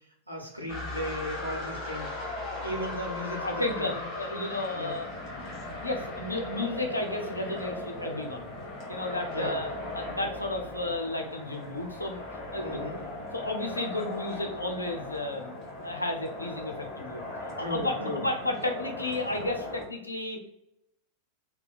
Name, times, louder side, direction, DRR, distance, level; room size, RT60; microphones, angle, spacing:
voice 1, 0.3-2.1 2.6-4.0 4.7-5.0 9.3-9.6 12.6-13.0 17.6-18.2, equal, 85° right, -2 dB, 0.8 m, -35 dB
sound 1, 0.7-19.9, left 2 dB, 30° left, 1.2 m, -38 dB
voice 2, 2.5-2.9 3.4-5.1 5.4-5.5 5.8-8.5 8.9-9.7 9.9-12.2 12.5-13.0 13.3-17.2 17.6-20.4, left 2 dB, 85° left, 3 dB, 0.5 m, -33 dB
2.8 x 2.1 x 3.9 m, 0.83 s
figure-of-eight pair, 90°, 0 cm